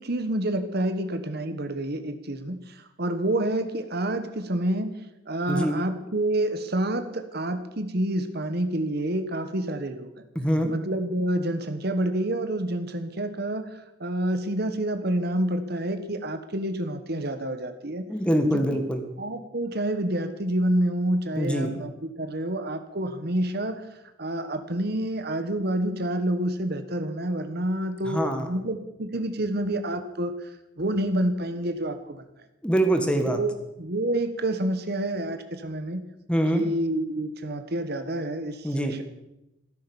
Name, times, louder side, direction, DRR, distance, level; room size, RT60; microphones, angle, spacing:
voice 1, 0.0-4.9 5.3-10.1 10.7-13.7 14.0-18.1 18.5-18.8 19.2-23.8 24.2-30.3 30.8-32.2 33.2-36.0 36.5-39.0, right 1 dB, 50° right, 9 dB, 1.3 m, -28 dB
voice 2, 10.4-10.7 18.1-19.0 21.3-21.7 28.0-28.5 32.6-33.4 36.3-36.7 38.6-38.9, right 1 dB, 5° left, 6 dB, 1.7 m, -24 dB
15.0 x 13.0 x 7.1 m, 0.91 s
head